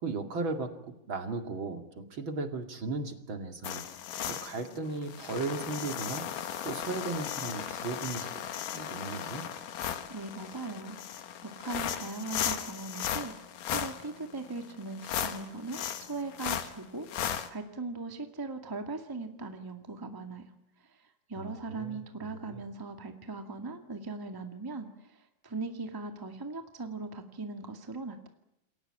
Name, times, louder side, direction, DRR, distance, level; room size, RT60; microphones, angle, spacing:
voice 1, 0.0-3.8 4.3-6.3 6.6-8.4 8.7-9.5 21.4-22.0 22.3-22.6, right 3 dB, 40° right, 6 dB, 2.4 m, -36 dB
sound 1, 3.6-17.5, left 9 dB, 65° left, 2.9 m, -36 dB
voice 2, 10.1-13.3 13.7-17.1 17.5-20.4 20.8-28.3, right 3 dB, 15° right, 5 dB, 0.7 m, -39 dB
28.5 x 22.0 x 8.9 m, 0.84 s
omnidirectional pair, 4.4 m